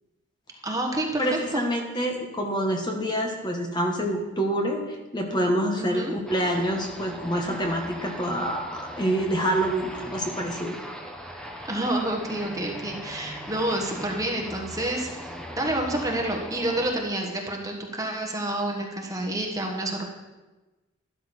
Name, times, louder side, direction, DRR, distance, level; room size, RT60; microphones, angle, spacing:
voice 1, 0.6-1.6 5.8-6.1 11.6-20.1, right 1 dB, 15° right, 1 dB, 1.3 m, -29 dB
voice 2, 1.2-10.8, equal, 20° left, 2 dB, 1.3 m, -27 dB
sound 1, 6.3-16.9, equal, 5° left, 1.1 m, -39 dB
12.5 x 12.0 x 4.3 m, 1.1 s
head